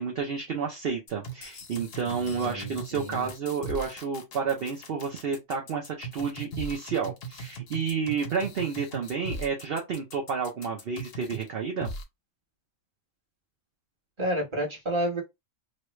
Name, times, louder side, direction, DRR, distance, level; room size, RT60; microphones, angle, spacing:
voice 1, 0.0-11.9, right 6 dB, 50° right, 0.8 m, -30 dB
sound 1, 1.1-11.5 11.8-12.0, right 2 dB, 55° left, 0.8 m, -39 dB
voice 2, 2.0-3.3 14.2-15.2, equal, 20° right, 1.2 m, -31 dB
3.1 x 2.3 x 3.0 m
omnidirectional pair, 1.5 m